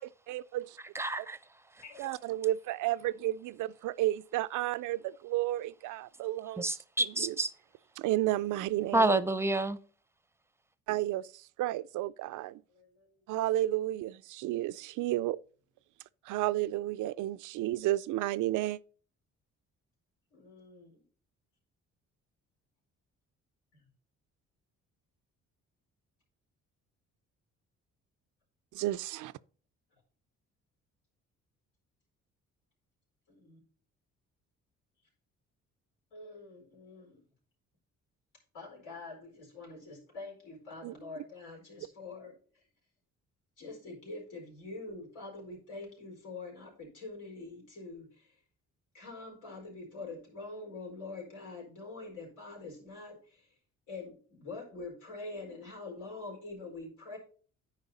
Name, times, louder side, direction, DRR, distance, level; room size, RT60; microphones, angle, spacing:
voice 1, 0.3-0.6 1.2-1.3 2.0-6.7 7.2-7.3 8.0-9.2 10.9-11.3 11.6-12.6 13.3-15.4 16.3-18.8 28.7-29.3 40.8-40.9, right 15 dB, 80° right, 0.5 m, -32 dB
voice 2, 0.9-1.4 6.6-7.5 8.9-9.8, right 2 dB, 10° right, 0.6 m, -28 dB
voice 3, 12.7-13.1 20.3-21.0 23.7-23.9 33.3-33.6 36.1-37.2 38.5-42.6 43.6-48.3 48.9-53.5 53.9-57.2, left 3 dB, 90° left, 4.5 m, -45 dB
9.7 x 4.9 x 4.1 m
cardioid pair, 90°, 30 cm